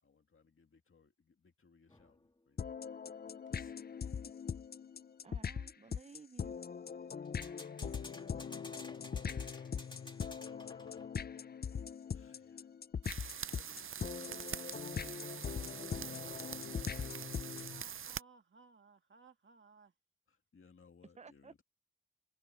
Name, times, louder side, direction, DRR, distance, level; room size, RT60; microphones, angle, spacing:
voice 1, 0.0-2.9 3.5-4.3 9.7-9.8 12.1-12.8 13.5-14.5 20.3-21.6, left 5 dB, 90° left, 2.3 m, -64 dB
sound 1, 1.9-2.4 7.2-11.3, left 2 dB, 20° left, 2.1 m, -54 dB
sound 2, 2.6-17.8, left 7 dB, 50° left, 0.4 m, -41 dB
voice 2, 5.2-6.6 21.2-21.6, right 5 dB, 35° right, 0.5 m, -55 dB
voice 3, 7.8-8.1 16.6-19.9, right 4 dB, 70° right, 2.0 m, -61 dB
sound 3, 13.0-18.2, right 8 dB, 85° right, 0.5 m, -45 dB
wide cardioid pair, 95°, 21 cm